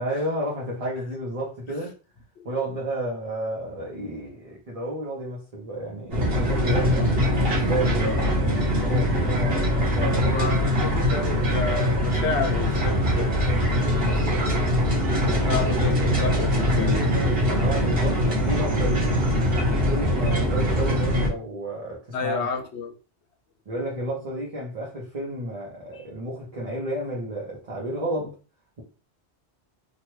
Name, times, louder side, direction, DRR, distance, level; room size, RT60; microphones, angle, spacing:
voice 1, 0.0-2.0 2.4-10.4 13.8-14.2 15.2-15.8 17.5-19.2 19.7-22.5 23.7-28.4, right 1 dB, 40° right, 0.7 m, -31 dB
sound 1, 6.1-21.3, equal, 60° right, 1.3 m, -22 dB
voice 2, 10.2-13.5 15.3-17.1 22.1-23.0 25.9-26.0, left 5 dB, 80° left, 1.0 m, -31 dB
2.9 x 2.3 x 3.0 m
omnidirectional pair, 1.1 m